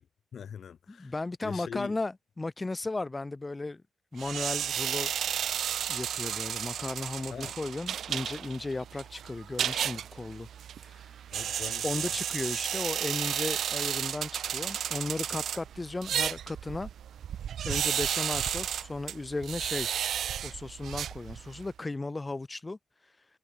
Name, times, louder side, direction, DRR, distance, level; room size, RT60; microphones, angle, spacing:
voice 1, 0.3-1.1 1.4-2.0 7.3-7.5 11.3-12.1, left 8 dB, 55° left, 4.1 m, -42 dB
voice 2, 0.9-3.8 4.1-5.1 5.9-10.5 10.8-11.2 11.8-16.9 17.6-19.9 20.4-23.2, left 2 dB, 20° left, 1.3 m, -35 dB
sound 1, 4.2-21.7, right 9 dB, 70° right, 1.8 m, -33 dB
cardioid pair, 115°, 0 cm